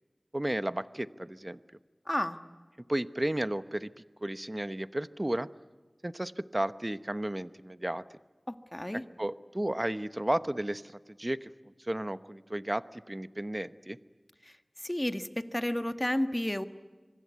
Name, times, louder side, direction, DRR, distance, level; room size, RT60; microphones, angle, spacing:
voice 1, 0.3-1.6 2.9-3.9 4.2-5.5 6.0-8.0 9.2-10.8 11.2-11.5 11.9-14.0, right 1 dB, 30° right, 14 dB, 0.9 m, -33 dB
voice 2, 2.0-2.4 8.5-9.0 14.4-16.7, left 1 dB, 20° left, 10 dB, 1.5 m, -32 dB
25.0 x 24.5 x 9.5 m, 1.3 s
wide cardioid pair, 40°, 0 cm